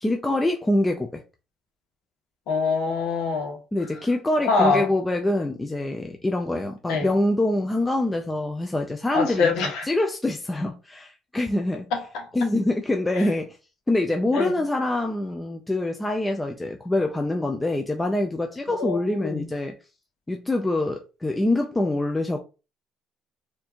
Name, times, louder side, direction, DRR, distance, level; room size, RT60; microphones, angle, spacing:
voice 1, 0.0-1.2 3.7-11.9 12.3-13.6 13.9-19.7 20.3-22.4, left 1 dB, 10° left, 0.4 m, -25 dB
voice 2, 2.5-3.6 4.4-4.9 6.9-7.1 9.1-9.8 11.9-12.3 13.1-13.2 14.3-14.5 18.7-19.5, left 4 dB, 85° left, 1.3 m, -24 dB
4.3 x 2.6 x 2.9 m
cardioid pair, 145°, 0 cm